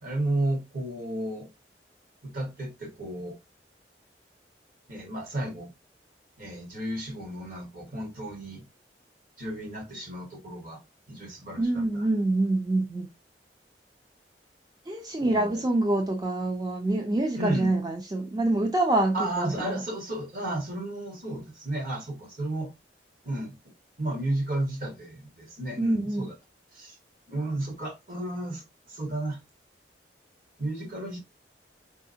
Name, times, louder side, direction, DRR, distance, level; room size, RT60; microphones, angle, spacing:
voice 1, 0.0-1.5 2.2-3.3 4.9-5.7 6.4-8.6 9.4-10.8 11.1-12.1 15.2-15.6 17.3-17.7 19.1-22.7 23.2-23.5 24.0-26.3 26.7-27.0 27.3-28.6 28.9-29.4 30.6-31.2, right 1 dB, 50° right, 1.6 m, -33 dB
voice 2, 11.6-13.1 14.9-19.8 25.8-26.2, right 2 dB, 20° right, 0.5 m, -26 dB
4.6 x 4.2 x 2.7 m
head